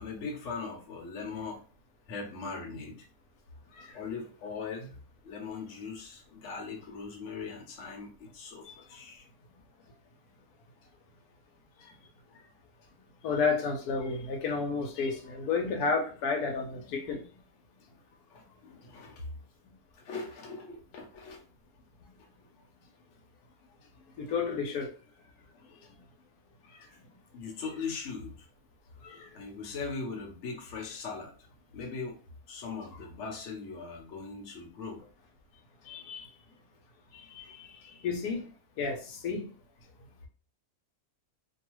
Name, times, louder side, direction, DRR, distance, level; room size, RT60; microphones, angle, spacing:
voice 1, 0.0-1.6 2.1-3.1 3.9-4.9 5.2-9.3 18.3-19.3 19.9-21.4 27.3-28.5 29.3-31.3 31.7-32.2 32.5-35.0, left 4 dB, 60° left, 2 dB, 1.0 m, -40 dB
voice 2, 13.2-17.2 24.2-24.9 29.0-29.3 35.9-36.3 37.3-37.7 38.0-38.4 38.8-39.4, left 4 dB, 90° left, 3 dB, 1.2 m, -31 dB
2.7 x 2.3 x 3.0 m, 0.38 s
omnidirectional pair, 1.6 m